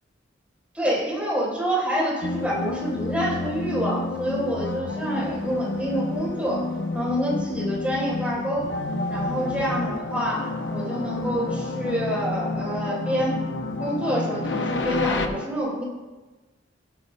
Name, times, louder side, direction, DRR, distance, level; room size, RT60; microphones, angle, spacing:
voice 1, 0.7-6.6 6.9-8.7 9.1-13.4 13.8-15.8, equal, 10° right, -6 dB, 4.3 m, -27 dB
sound 1, 2.2-15.3, left 2 dB, 70° left, 0.9 m, -29 dB
17.0 x 11.5 x 2.3 m, 1.2 s
head